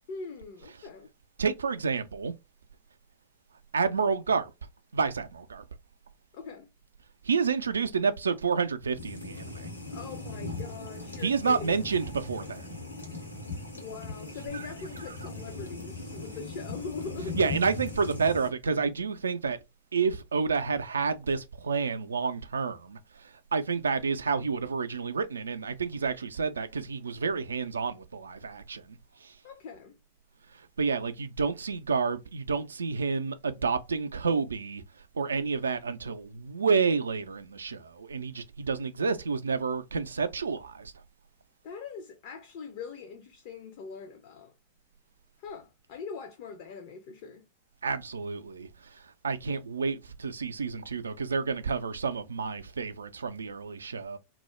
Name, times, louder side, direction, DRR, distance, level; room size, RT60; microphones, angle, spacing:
voice 1, 0.1-1.1 6.3-6.7 9.9-11.8 13.8-17.5 29.4-30.0 41.6-44.5 45.4-47.5, left 5 dB, 50° left, 0.4 m, -42 dB
voice 2, 1.4-2.3 3.7-4.5 4.9-5.6 7.2-9.7 11.2-12.8 17.4-19.6 19.9-29.3 30.5-34.8 35.2-40.9 47.8-54.2, right 5 dB, 70° right, 0.3 m, -29 dB
sound 1, 9.0-18.5, left 3 dB, 85° left, 1.0 m, -39 dB
2.3 x 2.0 x 3.0 m
figure-of-eight pair, 90°, 0 cm